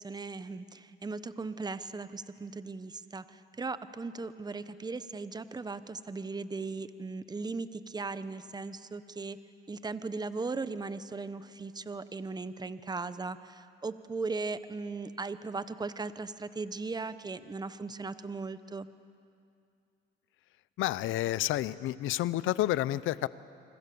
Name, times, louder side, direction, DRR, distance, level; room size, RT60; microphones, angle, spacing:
voice 1, 0.0-9.4 9.7-18.9, right 3 dB, 20° right, 13 dB, 0.9 m, -38 dB
voice 2, 20.8-23.3, left 14 dB, 85° left, 18 dB, 0.6 m, -30 dB
26.5 x 25.5 x 6.9 m, 2.4 s
cardioid pair, 90°, 20 cm